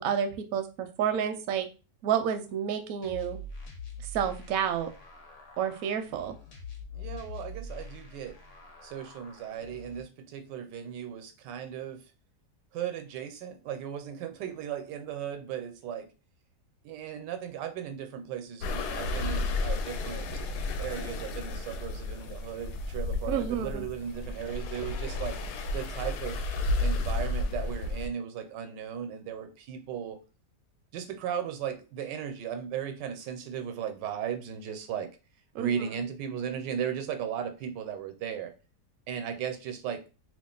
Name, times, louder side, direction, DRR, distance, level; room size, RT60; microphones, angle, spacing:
voice 1, 0.0-1.7 2.0-3.4 4.1-4.9 5.6-6.3 23.3-23.9 35.5-35.7, right 8 dB, 70° right, 0.9 m, -30 dB
sound 1, 3.0-10.0, left 3 dB, 55° left, 1.0 m, -44 dB
voice 2, 6.9-8.4 8.8-12.1 12.7-16.1 16.8-20.4 20.8-25.4 25.7-26.4 26.8-30.2 30.9-35.1 35.6-38.5 39.1-40.0, right 8 dB, 85° right, 1.2 m, -36 dB
sound 2, 18.6-28.1, left 2 dB, 75° left, 1.1 m, -32 dB
2.8 x 2.4 x 3.7 m
omnidirectional pair, 1.8 m